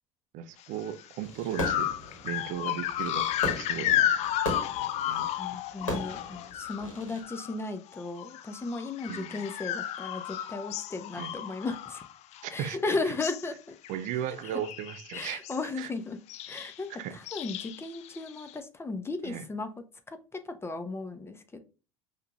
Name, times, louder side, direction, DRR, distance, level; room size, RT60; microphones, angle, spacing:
voice 1, 0.3-1.9 2.2-4.1 5.1-5.6 9.1-9.4 11.2-11.3 12.4-13.1 13.9-15.4 15.7-15.9 16.9-17.2 19.2-19.4, right 10 dB, 50° right, 0.5 m, -36 dB
sound 1, 0.9-1.0 1.5-7.6 7.9-12.7 13.0-13.5 13.8-14.1 14.4-15.7 16.3-16.8 17.3-18.5, left 11 dB, 40° left, 0.4 m, -33 dB
Fireworks, 1.2-7.2, left 1 dB, 80° left, 1.6 m, -38 dB
voice 2, 5.4-12.0 12.5-13.8 15.1-16.2 16.5-19.7 20.1-21.6, left 3 dB, 15° left, 0.7 m, -35 dB
5.7 x 3.1 x 2.4 m
figure-of-eight pair, 65°, 17 cm